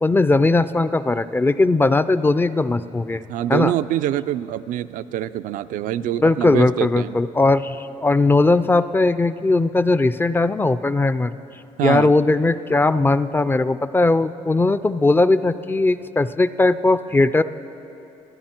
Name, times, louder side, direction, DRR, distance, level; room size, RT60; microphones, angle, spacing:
voice 1, 0.0-3.2 3.5-3.7 6.2-11.3 11.8-17.4, left 2 dB, 15° left, 13 dB, 0.4 m, -18 dB
voice 2, 3.3-7.2 11.8-12.1, right 12 dB, 75° right, 12 dB, 0.4 m, -25 dB
26.5 x 9.5 x 4.4 m, 2.8 s
cardioid pair, 105°, 14 cm